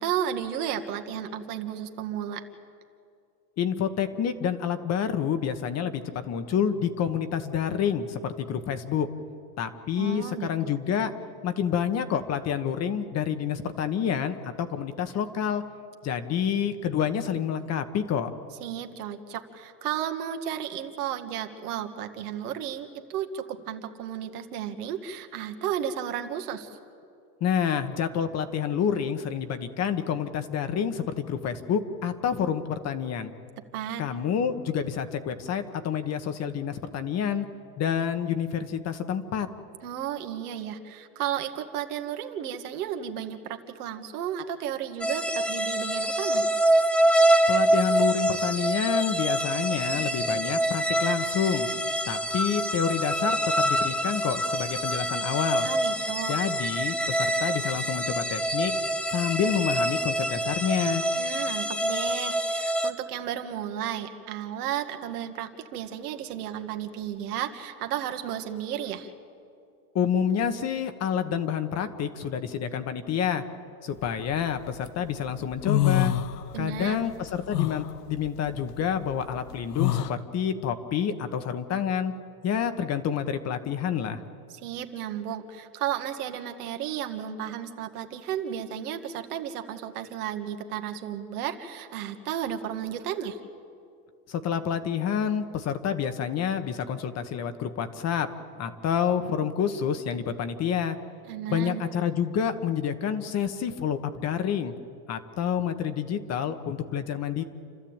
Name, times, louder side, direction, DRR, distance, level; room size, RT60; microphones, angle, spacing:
voice 1, 0.0-2.4 10.0-10.7 18.6-26.8 33.7-34.0 39.8-46.4 55.6-56.3 61.2-69.1 76.5-77.0 84.5-93.4 101.3-101.8, right 10 dB, 75° right, 5 dB, 2.0 m, -33 dB
voice 2, 3.6-9.1 9.6-11.1 11.4-15.6 16.0-18.3 27.4-33.3 34.0-37.4 37.8-39.5 47.5-51.7 52.1-55.7 56.3-58.7 59.1-61.0 69.9-73.4 73.8-76.1 76.6-82.1 82.4-84.2 94.3-98.3 98.6-101.0 101.5-104.7 105.1-107.4, left 8 dB, 35° left, 9 dB, 1.3 m, -28 dB
sound 1, 45.0-62.9, right 1 dB, ahead, 0.9 m, -26 dB
sound 2, 74.1-74.9 75.3-76.8 77.1-80.1, left 13 dB, 85° left, 1.0 m, -27 dB
29.0 x 13.0 x 8.9 m, 2.4 s
supercardioid pair, 120°, 46 cm